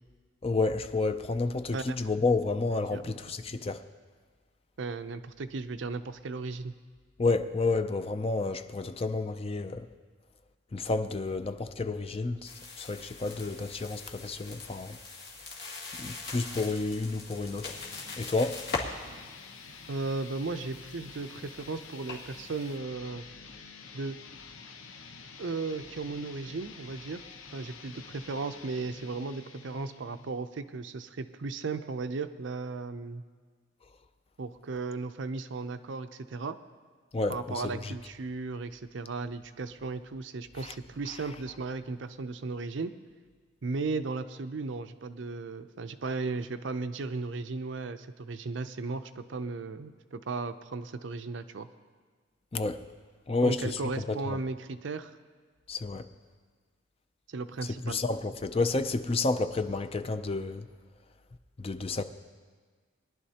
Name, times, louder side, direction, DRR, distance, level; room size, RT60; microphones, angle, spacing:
voice 1, 0.4-3.8 7.2-9.9 10.7-15.0 16.0-17.8 18.2-18.6 37.1-37.9 40.6-40.7 52.5-52.8 53.3-54.4 55.7-56.1 57.6-60.7 61.6-62.0, left 3 dB, 30° left, 0.4 m, -30 dB
voice 2, 2.9-3.3 4.8-6.7 19.9-23.2 23.9-24.2 25.4-27.2 27.5-33.2 34.4-36.6 37.3-43.0 43.6-51.7 53.4-55.1 57.3-58.0, right 3 dB, 65° right, 0.5 m, -36 dB
sound 1, 12.4-22.8, left 3 dB, 55° left, 2.0 m, -42 dB
sound 2, 17.6-30.5, left 5 dB, 80° left, 0.8 m, -48 dB
21.5 x 11.0 x 2.9 m
head